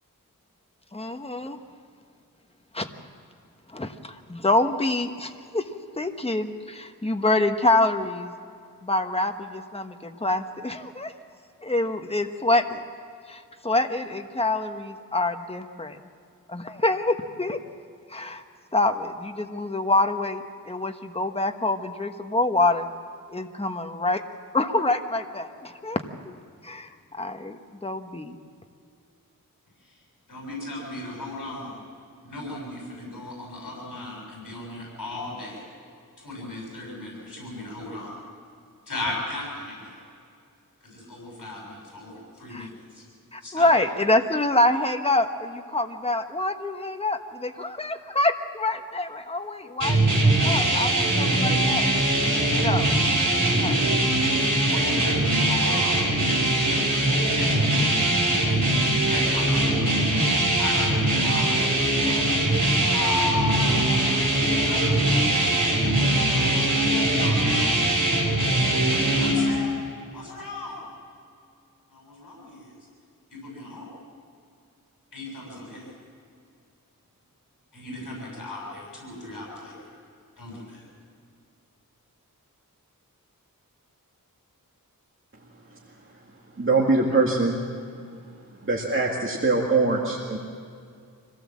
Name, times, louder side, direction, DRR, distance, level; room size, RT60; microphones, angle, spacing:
voice 1, 0.9-1.6 2.7-2.9 3.7-5.6 6.0-8.3 8.8-11.1 11.6-12.8 13.3-16.0 16.5-17.6 18.1-18.4 18.7-22.9 23.3-24.2 24.5-26.3 26.6-28.3 42.5-42.7 43.3-51.9 52.6-52.9 53.5-53.9, left 2 dB, 15° left, 6 dB, 1.2 m, -26 dB
voice 2, 29.8-31.8 32.2-35.7 36.2-38.2 38.8-40.0 40.8-43.0 43.4-43.7 54.6-56.2 56.5-57.8 58.4-59.8 60.6-64.2 64.6-67.9 68.7-69.7 70.1-70.9 71.9-72.8 73.3-73.9 75.1-75.9 77.7-79.9 80.4-80.8, left 2 dB, 65° left, -3 dB, 6.9 m, -37 dB
sound 1, 49.8-69.3, right 1 dB, 55° right, 6.1 m, -22 dB
voice 3, 86.6-87.6 88.6-90.4, right 3 dB, 35° right, -2 dB, 2.2 m, -22 dB
25.5 x 17.0 x 7.4 m, 2.3 s
wide cardioid pair, 85°, 35 cm